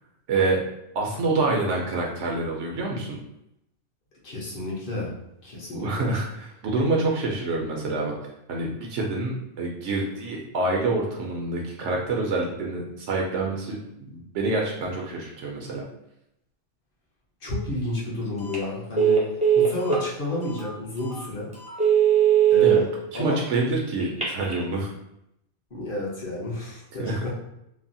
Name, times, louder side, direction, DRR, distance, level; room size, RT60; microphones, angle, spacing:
voice 1, 0.3-0.6 0.9-3.1 5.7-8.1 8.5-13.8 14.1-15.8 22.6-22.8 23.1-24.9 27.0-27.3, right 2 dB, 75° right, -1 dB, 0.9 m, -27 dB
voice 2, 4.2-5.1 5.4-6.1 17.4-19.3 19.5-21.5 22.5-22.9 23.1-23.4 25.7-27.3, left 2 dB, 50° left, -5 dB, 1.0 m, -31 dB
Telephone, 18.4-18.6 19.0-20.0 20.6-20.7 21.1-21.2 21.7-22.8 24.0-24.6, right 9 dB, 10° right, 0.4 m, -19 dB
3.2 x 2.0 x 2.6 m, 0.82 s
omnidirectional pair, 1.2 m